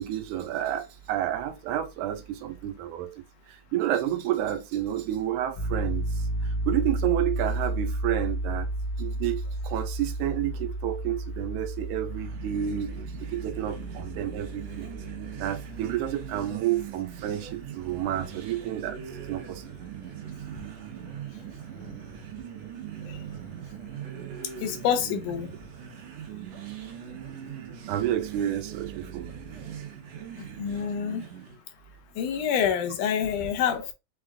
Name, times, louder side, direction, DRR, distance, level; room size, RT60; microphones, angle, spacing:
voice 1, 0.0-3.2 3.5-6.1 6.7-8.7 9.0-12.9 13.3-14.9 15.4-19.0 19.3-19.6 27.9-29.3, right 12 dB, 85° right, 2.1 m, -30 dB
Piano, 5.6-16.4, right 1 dB, 45° left, 1.6 m, -32 dB
sound 1, 12.1-31.6, right 9 dB, 70° right, 1.9 m, -41 dB
voice 2, 24.6-25.5 30.4-31.2 32.2-33.9, left 8 dB, 80° left, 2.4 m, -27 dB
5.9 x 2.3 x 3.5 m
omnidirectional pair, 3.5 m